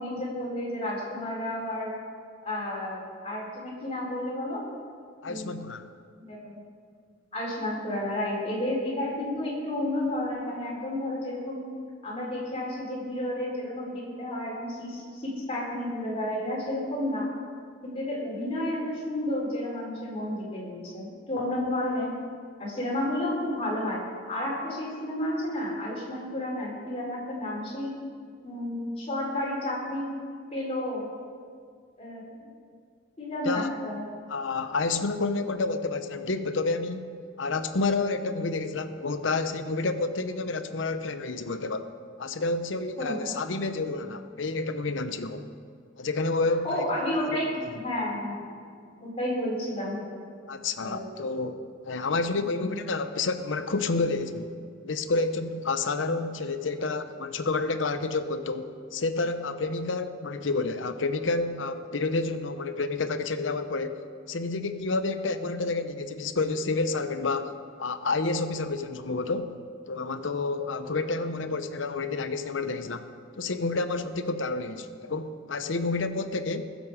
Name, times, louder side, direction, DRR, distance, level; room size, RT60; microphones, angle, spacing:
voice 1, 0.0-1.9 2.4-4.6 5.2-5.6 6.2-6.6 7.3-11.6 12.0-17.3 17.8-22.1 22.6-24.0 24.3-28.0 28.4-30.1 30.5-31.1 32.0-32.5 33.2-34.1 43.0-43.3 46.6-48.4 49.0-50.0 50.8-51.1 52.6-52.7, left 1 dB, 30° left, -5 dB, 4.2 m, -31 dB
voice 2, 5.2-5.8 33.4-33.7 34.3-41.9 42.2-45.5 46.0-46.8 50.5-51.6 51.8-54.5 54.8-64.0 64.3-67.5 67.8-69.5 69.9-73.1 73.4-76.6, left 3 dB, 75° left, 10 dB, 0.8 m, -29 dB
20.5 x 7.7 x 4.9 m, 2.1 s
head